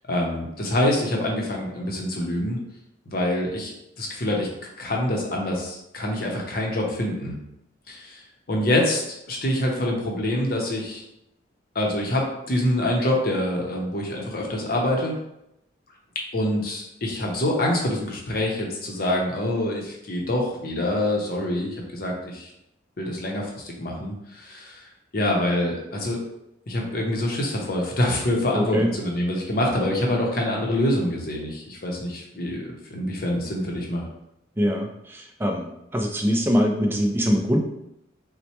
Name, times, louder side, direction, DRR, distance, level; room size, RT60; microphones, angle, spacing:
voice 1, 0.1-2.6 3.1-4.5 4.8-7.4 7.9-8.2 8.5-9.0 9.3-11.0 11.7-15.1 16.3-22.5 23.0-24.8 25.1-26.2 26.7-32.6 32.9-34.0, left 1 dB, 50° left, -1 dB, 0.7 m, -25 dB
voice 2, 28.5-28.9 34.6-35.7 35.9-37.6, equal, 10° right, 2 dB, 0.3 m, -23 dB
4.2 x 2.1 x 2.8 m, 0.84 s
head